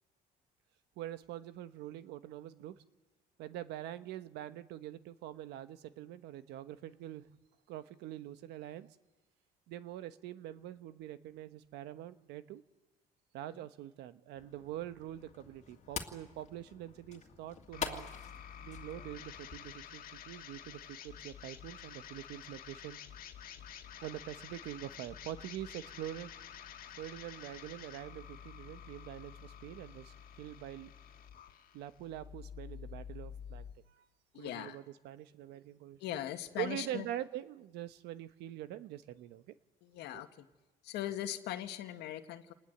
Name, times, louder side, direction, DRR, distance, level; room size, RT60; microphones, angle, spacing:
voice 1, 1.0-2.8 3.4-7.3 7.7-8.9 9.7-12.6 13.3-18.1 18.6-23.0 24.0-26.3 27.0-30.9 31.7-34.0 34.3-36.2 36.6-39.5 40.1-40.2, right 12 dB, 85° right, 12 dB, 1.1 m, -44 dB
sound 1, 14.3-19.7, left 7 dB, 40° left, 2.4 m, -46 dB
sound 2, 17.7-33.7, left 8 dB, 60° left, 1.9 m, -50 dB
voice 2, 34.3-34.8 36.0-37.1 39.8-40.5 40.8-42.5, left 12 dB, 80° left, 7 dB, 1.7 m, -40 dB
28.5 x 20.0 x 8.0 m, 1.1 s
cardioid pair, 110°, 17 cm